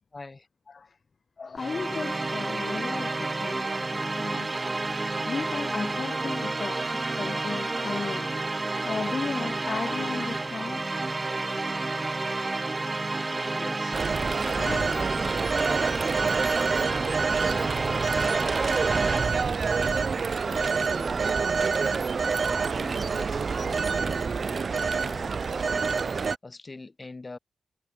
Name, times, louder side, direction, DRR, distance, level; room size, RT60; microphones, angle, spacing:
voice 1, 0.1-0.5 13.4-21.4 21.9-27.4, left 3 dB, 30° left, 3.8 m, -44 dB
voice 2, 1.4-4.6 5.1-8.3 8.7-10.9 12.9-13.1 14.4-15.0, left 4 dB, 45° left, 0.4 m, -35 dB
sound 1, 1.6-19.5, right 3 dB, 25° right, 0.9 m, -30 dB
sound 2, 2.0-16.0, equal, 5° right, 4.6 m, -56 dB
Telephone, 13.9-26.4, right 5 dB, 50° right, 0.4 m, -27 dB
cardioid pair, 90°, 0 cm